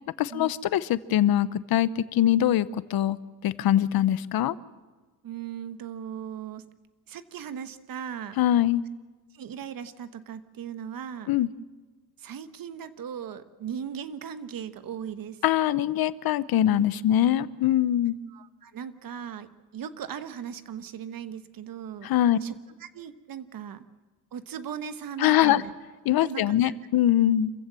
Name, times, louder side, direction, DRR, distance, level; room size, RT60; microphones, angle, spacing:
voice 1, 0.2-3.2 3.4-4.5 8.4-8.8 11.3-11.5 15.4-18.2 22.0-22.4 25.2-25.6 26.1-27.5, left 12 dB, 70° left, 17 dB, 0.8 m, -23 dB
voice 2, 5.2-6.6 7.1-8.4 9.3-11.3 12.2-15.4 18.3-23.8 24.3-25.7 26.2-26.7, right 8 dB, 60° right, 12 dB, 1.2 m, -38 dB
27.0 x 15.0 x 7.5 m, 1.3 s
cardioid pair, 110°, 38 cm